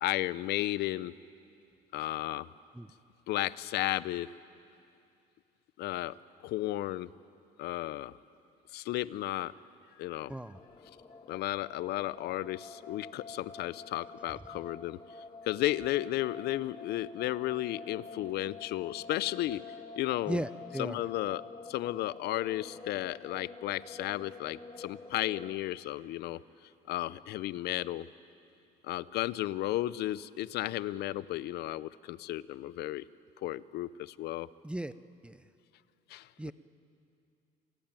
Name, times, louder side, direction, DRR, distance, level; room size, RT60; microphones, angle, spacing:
voice 1, 0.0-1.1 1.9-2.5 3.3-4.3 5.8-6.2 6.4-7.1 7.6-8.1 8.7-9.5 10.0-10.4 11.3-15.0 15.4-20.4 20.8-21.4 21.7-26.4 26.9-28.1 28.8-33.0 33.4-34.5 36.1-36.5, left 15 dB, 75° left, 18 dB, 0.6 m, -34 dB
sound 1, 10.5-25.6, left 4 dB, 30° left, 1.5 m, -48 dB
voice 2, 20.3-21.0 34.6-34.9 35.2-35.4 36.4-36.5, right 1 dB, 5° right, 14 dB, 0.6 m, -36 dB
27.5 x 18.0 x 9.0 m, 2.5 s
cardioid pair, 110°, 17 cm